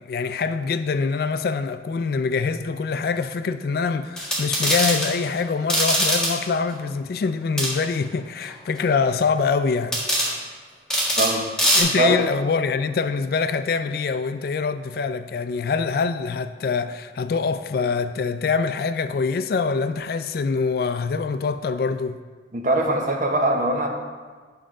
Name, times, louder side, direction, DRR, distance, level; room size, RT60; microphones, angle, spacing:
voice 1, 0.0-10.0 11.8-22.2, left 5 dB, 55° left, 0.3 m, -24 dB
sound 1, 4.2-5.1 5.7-6.3 7.6-7.7 9.9-10.3 10.9-11.3 11.6-11.8, equal, 5° left, 1.7 m, -21 dB
voice 2, 22.5-23.9, right 2 dB, 45° right, 1.0 m, -21 dB
9.2 x 6.3 x 3.7 m
head